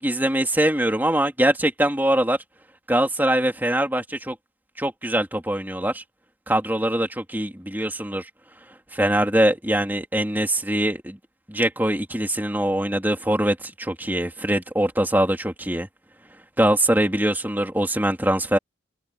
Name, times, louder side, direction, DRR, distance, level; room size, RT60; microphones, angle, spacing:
voice 1, 0.0-2.4 2.9-4.3 4.8-6.0 6.5-8.3 8.9-11.2 11.5-15.9 16.6-18.6, right 1 dB, 10° right, 3.1 m, -22 dB
head